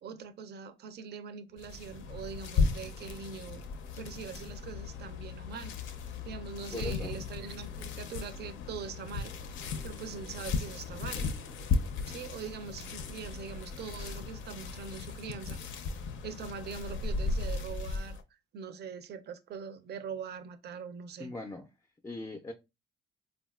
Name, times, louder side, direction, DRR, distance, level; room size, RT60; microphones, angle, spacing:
voice 1, 0.0-3.6 4.0-5.7 6.2-9.4 9.8-11.3 12.1-15.6 16.2-18.2 18.5-21.3, right 6 dB, 55° right, 0.5 m, -42 dB
sound 1, 1.6-18.2, left 4 dB, 75° left, 0.4 m, -36 dB
voice 2, 6.7-7.2 21.2-21.7 22.0-22.5, left 2 dB, 15° left, 0.4 m, -39 dB
3.6 x 2.3 x 2.3 m
cardioid pair, 90°, 20 cm